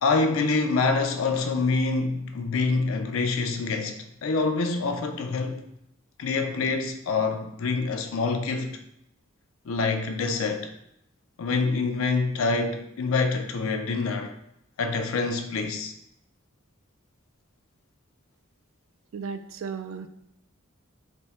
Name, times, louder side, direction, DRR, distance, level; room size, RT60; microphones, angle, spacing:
voice 1, 0.0-5.7 6.2-8.8 9.7-10.7 11.4-14.3 14.8-15.9, left 4 dB, 85° left, 0.4 m, -26 dB
voice 2, 19.1-20.1, right 6 dB, 75° right, 0.3 m, -35 dB
3.5 x 2.0 x 4.1 m
head